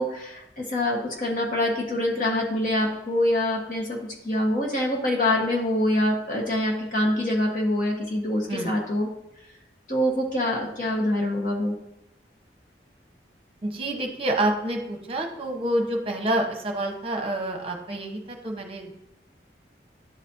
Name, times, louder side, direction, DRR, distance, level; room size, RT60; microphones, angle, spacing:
voice 1, 0.0-4.0 4.2-9.1 9.9-11.7, left 1 dB, 50° left, -1 dB, 1.3 m, -25 dB
voice 2, 13.6-19.0, right 1 dB, 30° right, 3 dB, 1.0 m, -28 dB
11.0 x 4.1 x 2.7 m, 0.85 s
head